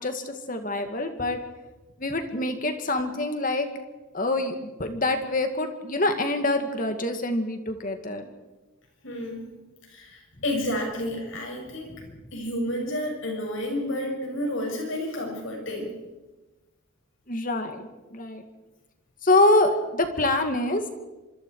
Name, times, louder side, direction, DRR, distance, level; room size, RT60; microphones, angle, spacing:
voice 1, 0.0-1.4 2.0-3.7 4.1-8.3 11.8-12.0 17.3-18.4 19.2-20.9, left 2 dB, 40° left, 6 dB, 2.2 m, -25 dB
voice 2, 9.0-9.5 9.9-11.9 12.3-15.9, left 1 dB, 65° left, 1 dB, 7.1 m, -30 dB
25.5 x 25.5 x 4.9 m, 1.1 s
head